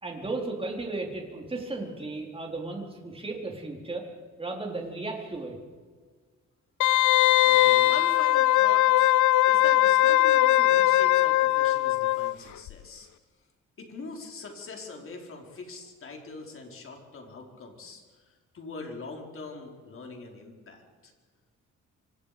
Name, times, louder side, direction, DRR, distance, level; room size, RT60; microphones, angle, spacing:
voice 1, 0.0-4.0 4.4-5.6, right 2 dB, 20° right, 1 dB, 4.3 m, -35 dB
Wind instrument woodwind instrument, 6.8-12.4 12.7-12.8, left 16 dB, 85° left, 0.6 m, -20 dB
voice 2, 7.4-9.2 9.5-13.1 13.8-21.1, left 3 dB, 45° left, 2 dB, 4.7 m, -42 dB
26.5 x 25.5 x 5.2 m, 1.5 s
cardioid pair, 130°, 29 cm